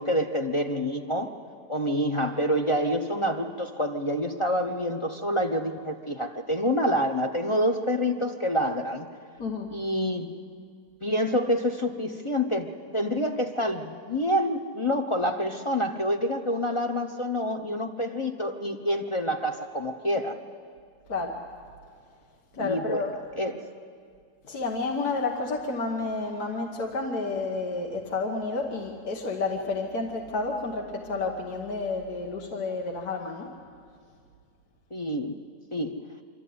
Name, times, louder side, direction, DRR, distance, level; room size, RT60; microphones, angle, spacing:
voice 1, 0.0-1.3 1.7-9.1 9.7-10.3 11.0-20.4 22.6-23.0 23.3-23.7 34.9-35.4 35.7-36.0, equal, 30° left, 3 dB, 0.5 m, -27 dB
voice 2, 9.4-9.7 21.1-21.4 22.5-23.1 24.5-33.5, left 3 dB, 70° left, 1 dB, 1.9 m, -30 dB
25.5 x 13.0 x 9.4 m, 2.1 s
omnidirectional pair, 1.7 m